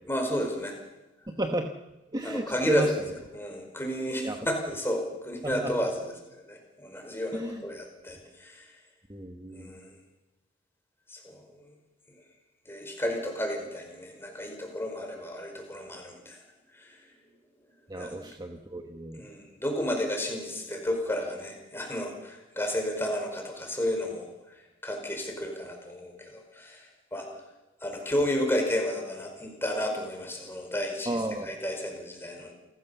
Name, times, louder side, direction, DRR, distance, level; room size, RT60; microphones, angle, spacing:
voice 1, 0.0-0.8 2.2-8.7 9.5-9.9 11.1-11.5 12.7-16.4 16.7-17.0 18.0-18.1 19.2-27.3 27.8-32.5, left 1 dB, 10° left, 2 dB, 5.0 m, -32 dB
voice 2, 2.1-2.9 4.2-4.4 5.4-5.9 7.3-7.6 9.1-9.7 17.9-19.3 31.1-31.5, right 1 dB, 20° right, 4 dB, 1.2 m, -32 dB
28.5 x 14.5 x 7.1 m, 1.1 s
head